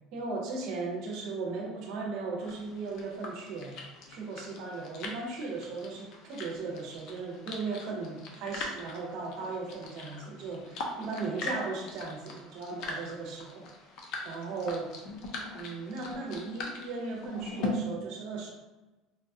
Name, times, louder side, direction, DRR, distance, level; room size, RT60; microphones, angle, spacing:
voice 1, 0.1-3.8 4.1-13.7 14.2-14.9 15.5-18.5, right 3 dB, 55° right, 1 dB, 0.7 m, -37 dB
sound 1, 2.4-17.7, left 3 dB, 50° left, 0.5 m, -42 dB
3.8 x 2.3 x 2.7 m, 1.1 s
cardioid pair, 165°, 0 cm